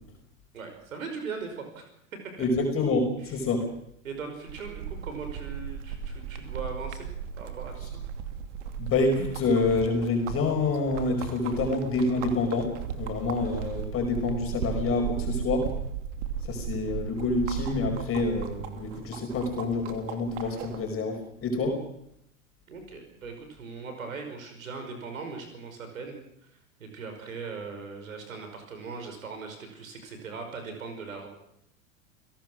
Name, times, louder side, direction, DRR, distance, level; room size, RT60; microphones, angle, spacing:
voice 1, 0.5-1.9 2.2-2.5 3.2-3.4 4.0-7.1 7.3-8.0 22.7-26.5 26.8-31.3, right 4 dB, 80° right, 5 dB, 5.5 m, -39 dB
voice 2, 2.4-3.7 8.8-15.7 16.4-21.8, left 3 dB, 35° left, 2 dB, 5.3 m, -27 dB
sound 1, 4.5-20.9, right 8 dB, 60° right, 2.7 m, -36 dB
29.5 x 17.5 x 6.4 m, 0.77 s
hypercardioid pair, 90°, 40 cm